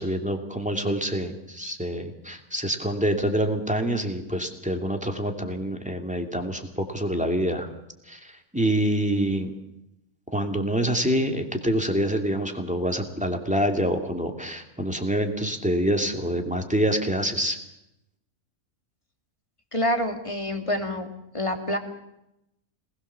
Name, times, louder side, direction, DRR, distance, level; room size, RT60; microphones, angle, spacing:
voice 1, 0.0-7.7 8.1-9.5 10.3-17.6, equal, 5° right, 3 dB, 2.5 m, -26 dB
voice 2, 19.7-21.1 21.3-21.8, left 1 dB, 20° left, 4 dB, 2.7 m, -26 dB
27.0 x 20.0 x 7.0 m, 0.85 s
omnidirectional pair, 1.6 m